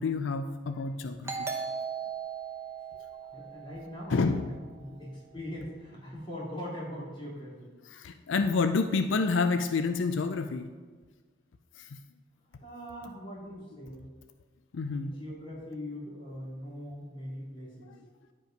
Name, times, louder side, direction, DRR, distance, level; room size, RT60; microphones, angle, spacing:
voice 1, 0.0-1.5 4.1-4.5 7.9-10.7 11.8-12.0 14.7-15.1, left 4 dB, 80° left, 8 dB, 0.4 m, -29 dB
Doorbell, 1.2-4.6, right 6 dB, 15° right, 1.0 m, -38 dB
voice 2, 3.3-7.7 8.3-8.5 12.6-14.1 14.8-17.9, equal, 25° left, -6 dB, 2.8 m, -41 dB
10.5 x 5.3 x 5.1 m, 1.5 s
head